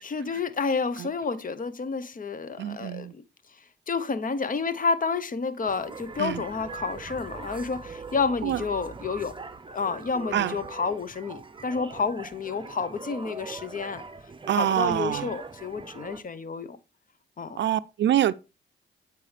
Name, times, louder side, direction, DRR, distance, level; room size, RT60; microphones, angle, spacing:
voice 1, 0.0-3.1 3.9-9.3 9.7-14.0 14.5-16.8 17.4-17.6, left 4 dB, 45° left, 0.8 m, -30 dB
voice 2, 2.6-3.1 6.2-6.4 8.4-8.6 10.3-10.6 14.5-15.3 17.6-18.3, right 11 dB, 65° right, 0.4 m, -25 dB
sound 1, 5.6-16.2, right 4 dB, 25° right, 0.7 m, -41 dB
8.5 x 4.6 x 3.3 m
cardioid pair, 65°, 20 cm